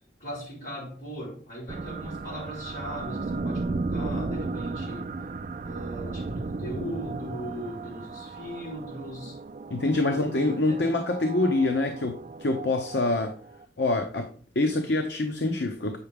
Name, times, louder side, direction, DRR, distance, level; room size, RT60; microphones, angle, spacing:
voice 1, 0.2-5.1 5.6-9.4 10.1-10.9, equal, 50° left, 4.4 m, -38 dB
sound 1, 1.7-13.6, right 3 dB, 45° right, 0.4 m, -35 dB
voice 2, 9.7-13.4 13.8-16.0, left 2 dB, 80° left, 0.8 m, -26 dB
8.3 x 5.8 x 3.6 m
head